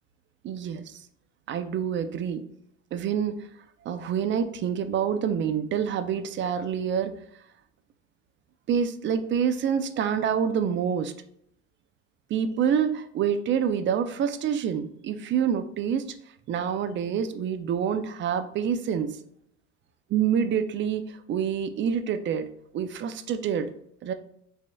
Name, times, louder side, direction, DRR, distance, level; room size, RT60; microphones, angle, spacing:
voice 1, 0.4-1.0 1.5-2.4 2.9-3.4 3.8-7.1 8.7-11.1 12.3-16.1 16.5-19.2 20.1-22.5 22.7-23.7 24.0-24.1, right 8 dB, 35° right, 10 dB, 0.5 m, -27 dB
7.3 x 2.8 x 2.3 m, 0.69 s
supercardioid pair, 100°, 32 cm